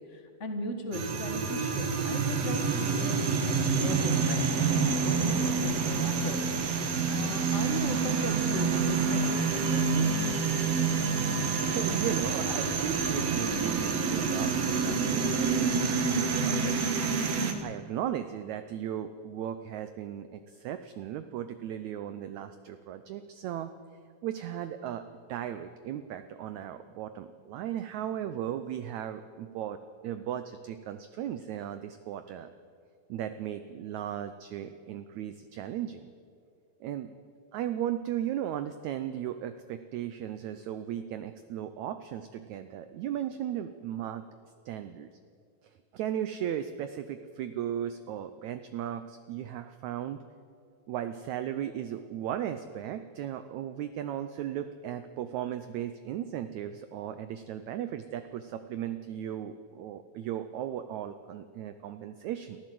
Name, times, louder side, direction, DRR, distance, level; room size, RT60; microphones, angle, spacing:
voice 1, 0.0-3.2 3.7-6.4 7.1-10.1, left 2 dB, 55° left, 5 dB, 0.7 m, -37 dB
sound 1, 0.9-17.5, right 5 dB, 55° right, 2.3 m, -27 dB
voice 2, 11.7-16.9 17.6-23.7 24.2-25.0 25.3-29.8 30.0-32.5 33.1-36.1 36.8-37.1 37.5-44.2 44.6-45.1 45.9-50.2 50.9-62.6, right 10 dB, 75° right, 10 dB, 1.7 m, -36 dB
24.0 x 14.5 x 7.7 m, 2.2 s
omnidirectional pair, 4.0 m